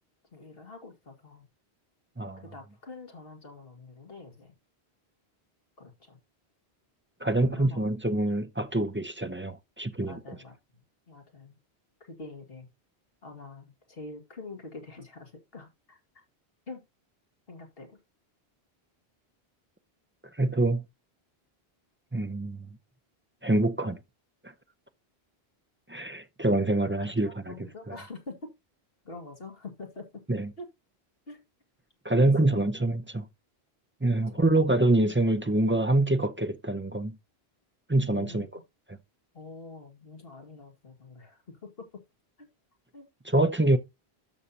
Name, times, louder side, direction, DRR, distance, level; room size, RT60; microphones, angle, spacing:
voice 1, 0.3-1.5 2.4-4.5 5.8-6.2 7.3-7.9 10.1-10.6 11.1-11.6 12.0-12.7 13.2-16.0 16.7-16.8 17.5-18.0 27.2-28.5 29.0-30.2 30.6-30.7 31.3-31.4 32.5-32.7 34.3-34.4 38.1-38.5 39.3-42.0 42.9-43.1, left 3 dB, 65° left, 2.4 m, -45 dB
voice 2, 7.2-10.2 20.4-20.8 22.1-22.7 23.4-24.0 25.9-27.5 27.9-28.0 30.3-30.5 32.0-33.3 34.0-37.2 37.9-38.5 43.3-43.8, right 2 dB, 15° right, 0.5 m, -25 dB
12.5 x 6.6 x 2.8 m
omnidirectional pair, 1.1 m